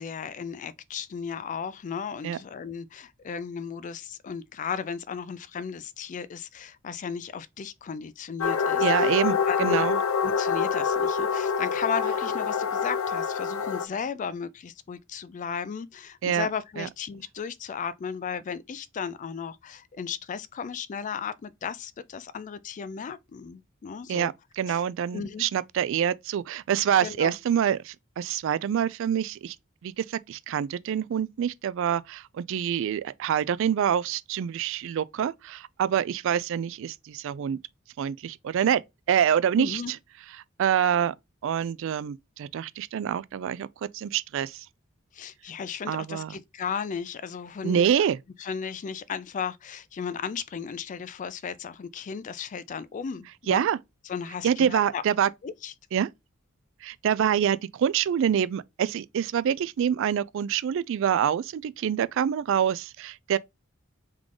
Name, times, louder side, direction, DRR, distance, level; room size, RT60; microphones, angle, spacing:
voice 1, 0.0-9.1 9.4-9.9 10.2-24.3 24.7-24.8 25.1-25.4 27.0-27.3 39.6-39.9 45.1-48.1 48.4-53.6 54.0-55.0 55.4-55.7, left 6 dB, 35° left, 0.3 m, -35 dB
sound 1, 8.4-13.9, left 6 dB, 85° left, 0.6 m, -26 dB
voice 2, 8.8-10.0 16.2-16.5 16.8-16.9 24.1-29.6 29.8-37.6 38.0-38.8 39.1-40.0 40.6-41.1 41.4-43.7 43.9-44.7 45.9-46.4 47.6-48.2 53.5-53.8 54.4-55.3 55.9-56.1 56.8-63.4, right 9 dB, 65° right, 0.3 m, -26 dB
3.7 x 3.1 x 3.7 m
head